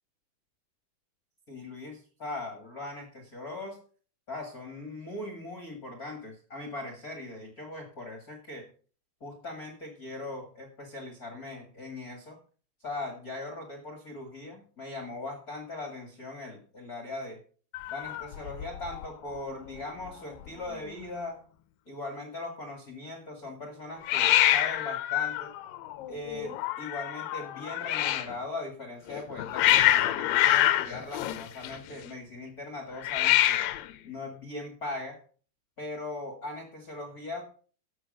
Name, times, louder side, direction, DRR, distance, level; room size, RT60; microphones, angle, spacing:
voice 1, 1.5-3.8 4.3-8.6 9.2-12.4 12.8-17.4 17.9-21.4 21.9-25.5 26.1-33.7 34.0-35.2 35.8-37.4, left 2 dB, 45° left, 3 dB, 1.2 m, -40 dB
Hiss, 17.7-19.1 19.4-19.8 20.1-20.2 20.4-21.0 24.0-28.3 29.1-32.0 33.0-33.9, left 14 dB, 75° left, 2.1 m, -26 dB
12.5 x 7.6 x 5.3 m, 0.41 s
omnidirectional pair, 4.8 m